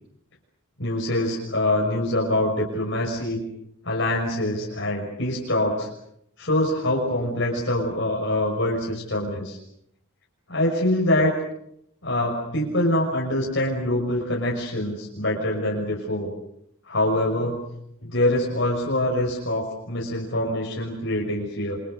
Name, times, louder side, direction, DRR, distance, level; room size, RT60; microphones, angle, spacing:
voice 1, 0.8-3.4 3.8-5.9 6.4-9.6 10.5-11.3 12.0-16.3 16.9-17.6 18.0-21.8, left 1 dB, 55° left, -1 dB, 6.0 m, -24 dB
29.0 x 26.0 x 6.7 m, 0.74 s
head